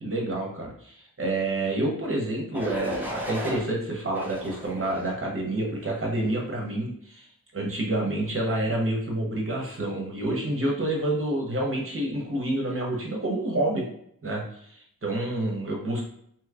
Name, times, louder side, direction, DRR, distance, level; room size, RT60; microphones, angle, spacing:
voice 1, 0.0-7.3 7.5-13.8 14.2-16.0, right 1 dB, 40° right, -1 dB, 1.0 m, -28 dB
sound 1, 2.5-3.6 4.1-5.2 5.8-6.1, left 1 dB, 5° right, 0.7 m, -36 dB
3.1 x 2.8 x 2.4 m, 0.69 s
wide cardioid pair, 70°, 34 cm